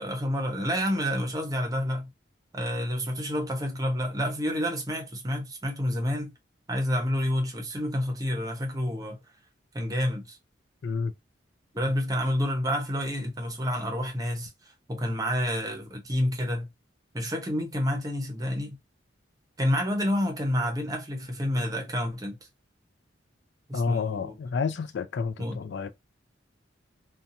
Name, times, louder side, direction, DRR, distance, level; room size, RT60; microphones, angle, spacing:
voice 1, 0.0-2.1 2.5-6.3 6.7-9.2 9.7-10.4 11.7-16.7 17.1-18.8 19.6-22.4 23.7-24.3 25.4-25.6, equal, 20° right, 0.7 m, -29 dB
voice 2, 23.7-25.9, left 5 dB, 60° left, 0.3 m, -30 dB
2.7 x 2.2 x 2.6 m
head